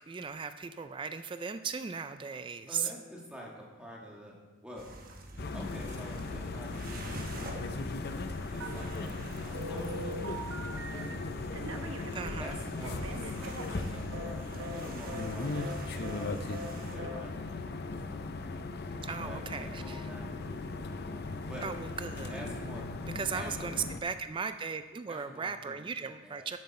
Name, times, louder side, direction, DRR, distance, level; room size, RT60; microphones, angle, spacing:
voice 1, 0.1-2.9 12.1-12.6 19.0-20.1 21.6-22.4 23.1-26.6, right 6 dB, 25° right, 10 dB, 0.3 m, -37 dB
voice 2, 2.7-4.4 4.6-4.8 5.5-8.0 8.5-10.4 10.9-11.1 11.4-12.0 12.4-18.6 19.1-21.1 21.5-21.7 22.3-23.7 25.1-25.8 26.2-26.5, equal, 5° right, -3 dB, 1.9 m, -48 dB
sound 1, 4.8-17.0, right 1 dB, 40° right, 1.0 m, -47 dB
sound 2, 5.4-24.0, left 3 dB, 50° left, 0.6 m, -38 dB
Telephone, 8.6-9.2 9.5-11.1 11.5-14.3 14.6-14.8 15.1-15.3 15.5-16.2 16.5-16.7 17.0-17.2, right 1 dB, 70° right, 1.0 m, -42 dB
12.5 x 7.7 x 4.2 m, 1.3 s
head